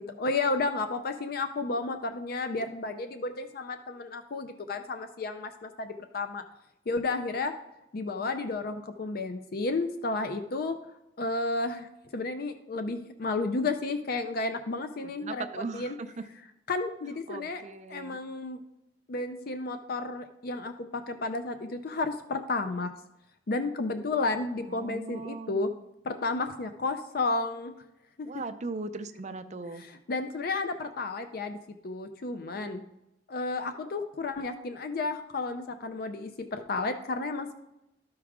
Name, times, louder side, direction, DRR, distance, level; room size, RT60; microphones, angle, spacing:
voice 1, 0.0-6.4 6.9-7.5 7.9-10.8 11.2-15.5 15.7-15.9 16.7-17.6 17.9-18.6 19.1-22.9 23.5-25.7 26.0-27.7 28.2-28.3 29.8-31.6 31.8-32.8 33.3-37.5, left 3 dB, 55° left, 8 dB, 0.5 m, -32 dB
voice 2, 15.0-16.2 17.3-18.2 24.7-25.7 28.3-29.8, right 3 dB, 40° right, 8 dB, 0.5 m, -39 dB
13.0 x 4.7 x 3.6 m, 0.89 s
head